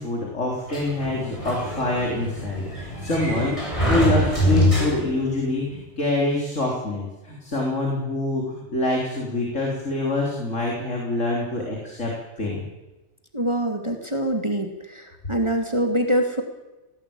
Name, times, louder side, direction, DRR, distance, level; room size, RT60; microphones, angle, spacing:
voice 1, 0.0-12.1 12.4-12.6, left 2 dB, 80° left, -1 dB, 4.2 m, -26 dB
Sliding door, 0.7-5.4, left 1 dB, 25° left, 7.5 m, -24 dB
voice 2, 13.3-16.4, right 1 dB, 25° right, 4 dB, 2.3 m, -24 dB
18.5 x 17.5 x 8.8 m, 1.1 s
omnidirectional pair, 1.3 m